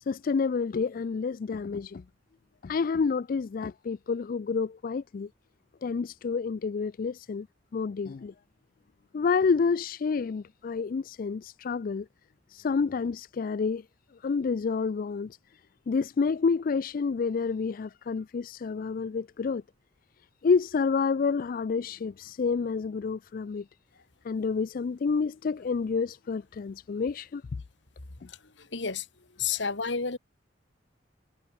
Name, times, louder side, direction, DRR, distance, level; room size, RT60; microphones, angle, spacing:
voice 1, 0.1-2.0 2.6-5.3 5.8-7.5 7.7-8.3 9.1-12.1 12.5-13.8 14.2-15.4 15.9-19.6 20.4-23.7 24.2-27.4 28.2-28.3, left 5 dB, 50° left, 0.4 m, -29 dB
voice 2, 28.3-29.1 29.4-30.2, left 5 dB, 70° left, 1.8 m, -31 dB
head